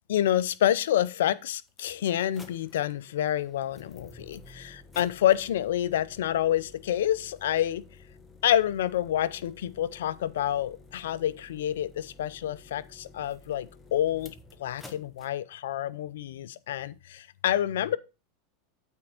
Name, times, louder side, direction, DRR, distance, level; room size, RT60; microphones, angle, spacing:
voice 1, 0.1-7.8 8.4-14.3 14.6-18.0, left 11 dB, 80° left, 0.5 m, -28 dB
sound 1, 1.0-1.1 1.7-15.3, left 3 dB, 15° left, 1.2 m, -52 dB
8.5 x 4.5 x 4.8 m
hypercardioid pair, 110°, 0 cm